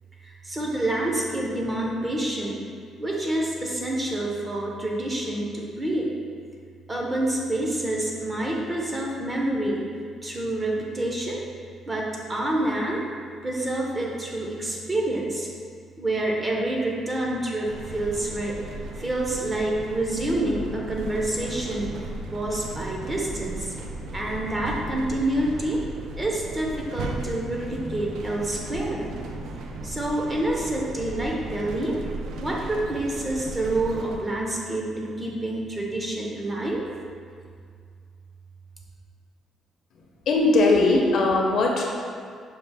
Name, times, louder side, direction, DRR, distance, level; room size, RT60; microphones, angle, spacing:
voice 1, 0.2-2.6 3.0-6.1 6.9-9.8 10.2-11.4 11.9-13.0 13.4-15.5 16.0-18.6 19.0-21.9 22.3-23.7 24.1-25.8 26.2-29.1 29.8-32.0 32.4-36.8, right 1 dB, 15° right, -2 dB, 0.5 m, -27 dB
sound 1, 17.7-34.2, right 2 dB, 75° right, 0.4 m, -36 dB
voice 2, 40.3-41.8, left 2 dB, 55° left, -1 dB, 0.6 m, -19 dB
5.7 x 2.4 x 3.3 m, 2.1 s
cardioid pair, 160°, 0 cm